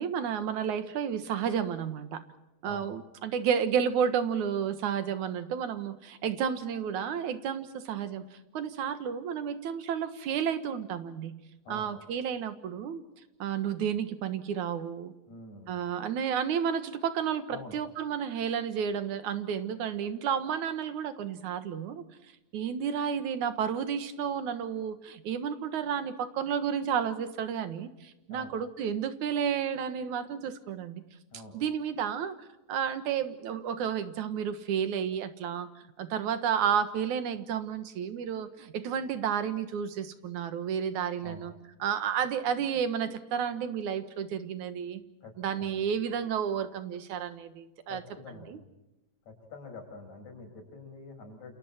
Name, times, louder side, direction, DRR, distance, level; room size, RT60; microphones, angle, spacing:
voice 1, 0.0-2.2 2.6-8.2 8.5-11.4 11.7-13.0 13.4-15.1 15.7-22.0 22.5-31.1 31.5-32.4 32.7-35.7 36.0-41.5 41.8-45.0 45.4-48.0 48.4-48.6, right 8 dB, 85° right, 10 dB, 2.9 m, -31 dB
voice 2, 15.3-15.7 17.5-17.8 28.3-28.5 31.3-31.5 41.2-41.4 45.2-45.7 47.9-48.6 49.3-51.6, left 3 dB, 70° left, 3 dB, 7.3 m, -46 dB
29.0 x 28.5 x 4.4 m, 0.97 s
omnidirectional pair, 3.3 m